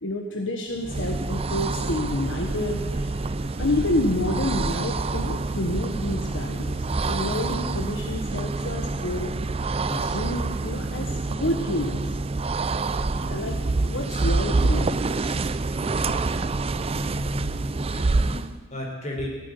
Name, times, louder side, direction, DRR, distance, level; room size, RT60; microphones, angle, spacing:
voice 1, 0.0-3.2 3.6-9.3 9.9-12.0 13.2-15.4 16.0-16.3, left 1 dB, 75° left, 2 dB, 1.4 m, -29 dB
sound 1, 0.8-18.6, right 3 dB, 30° right, 0.5 m, -27 dB
sound 2, 1.4-8.2, equal, 55° right, 3.2 m, -41 dB
voice 2, 16.9-19.3, left 1 dB, 40° left, 0 dB, 4.0 m, -35 dB
15.0 x 8.3 x 9.9 m, 1.3 s
head